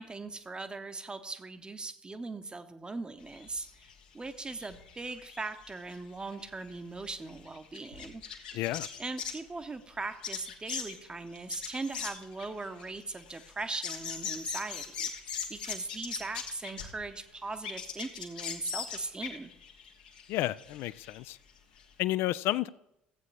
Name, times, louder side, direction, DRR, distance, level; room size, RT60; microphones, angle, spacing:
voice 1, 0.0-19.5, right 3 dB, 20° right, 9 dB, 0.8 m, -40 dB
sound 1, 3.2-9.5 10.0-17.2 17.5-21.2 21.5-21.6 21.8-21.9, left 7 dB, 70° left, 1.2 m, -41 dB
voice 2, 8.5-8.9 20.3-21.4 22.0-22.7, left 16 dB, 55° left, 19 dB, 0.4 m, -31 dB
14.0 x 8.2 x 3.3 m, 0.84 s
figure-of-eight pair, 60°, 5 cm